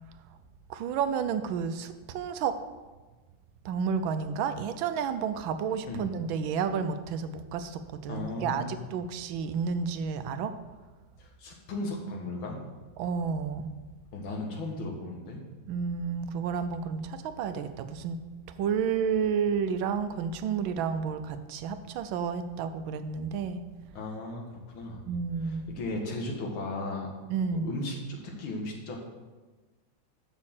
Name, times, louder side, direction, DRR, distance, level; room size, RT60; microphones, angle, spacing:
voice 1, 0.7-2.5 3.6-10.5 13.0-13.7 15.7-18.2 18.6-23.7 25.1-25.7 27.3-27.7, right 6 dB, 80° right, 10 dB, 1.4 m, -31 dB
voice 2, 8.1-8.8 11.2-12.6 14.1-15.4 23.9-25.0 25.4-27.1 27.5-29.0, left 2 dB, 85° left, 1 dB, 2.3 m, -36 dB
6.4 x 6.4 x 7.2 m, 1.3 s
omnidirectional pair, 2.2 m